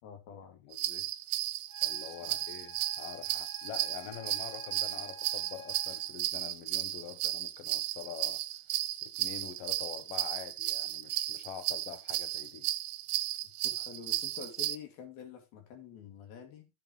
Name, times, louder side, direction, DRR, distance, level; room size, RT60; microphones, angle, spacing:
voice 1, 0.0-0.6 2.2-2.4 13.6-16.7, left 7 dB, 70° left, 4.0 m, -47 dB
voice 2, 0.5-1.1 1.8-8.4 9.0-12.7, left 11 dB, 90° left, 1.3 m, -45 dB
sound 1, 0.7-14.8, right 15 dB, 80° right, 2.3 m, -34 dB
Wind instrument woodwind instrument, 1.7-6.3, left 2 dB, 25° left, 2.0 m, -51 dB
14.0 x 7.7 x 2.9 m
omnidirectional pair, 4.6 m